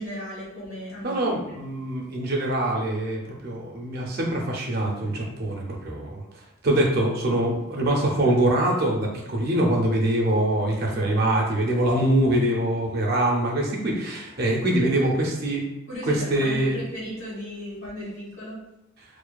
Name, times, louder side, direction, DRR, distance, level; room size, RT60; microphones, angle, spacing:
voice 1, 0.0-1.6 14.8-15.1 15.9-18.6, equal, 65° left, -6 dB, 1.2 m, -36 dB
voice 2, 1.0-6.2 6.6-15.6 16.0-16.8, right 1 dB, 45° right, -1 dB, 0.4 m, -24 dB
2.4 x 2.2 x 2.2 m, 0.91 s
head